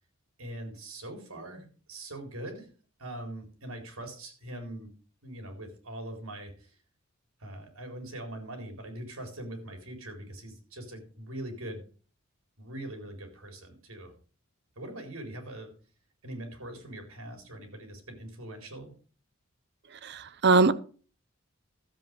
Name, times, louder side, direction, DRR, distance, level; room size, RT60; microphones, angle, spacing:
voice 1, 0.4-2.7 3.0-4.9 5.2-6.7 7.4-11.8 12.6-14.1 14.8-15.7 16.2-18.9, right 1 dB, 80° right, 4.1 m, -42 dB
voice 2, 20.0-20.7, right 3 dB, 55° right, 0.7 m, -22 dB
13.5 x 7.9 x 5.2 m
head